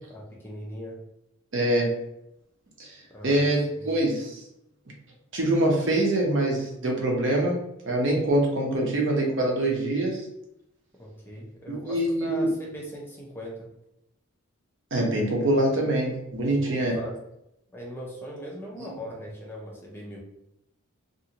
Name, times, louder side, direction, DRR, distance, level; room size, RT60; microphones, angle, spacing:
voice 1, 0.1-1.0 3.1-3.4 3.8-3.9 11.0-13.7 16.4-17.2 17.7-20.2, equal, 10° left, -3 dB, 0.5 m, -40 dB
voice 2, 1.5-1.9 2.8-3.0 3.2-4.4 5.3-7.6 7.9-10.3 11.7-12.5 14.9-17.0 18.8-18.9, right 1 dB, 60° right, -1 dB, 0.7 m, -24 dB
2.5 x 2.5 x 2.8 m, 0.82 s
head